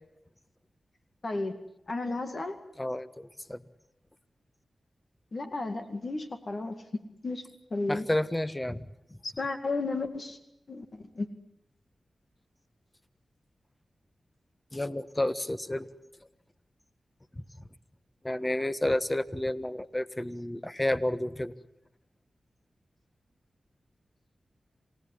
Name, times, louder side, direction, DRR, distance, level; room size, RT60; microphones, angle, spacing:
voice 1, 1.2-1.6 1.9-2.6 5.3-7.4 7.7-8.1 9.2-10.4 10.7-11.3, left 3 dB, 60° left, 7 dB, 2.2 m, -33 dB
voice 2, 2.8-3.6 7.9-8.8 14.7-15.9 18.2-21.5, left 1 dB, 20° left, 13 dB, 1.5 m, -30 dB
27.5 x 18.5 x 9.8 m, 0.82 s
cardioid pair, 40°, 0 cm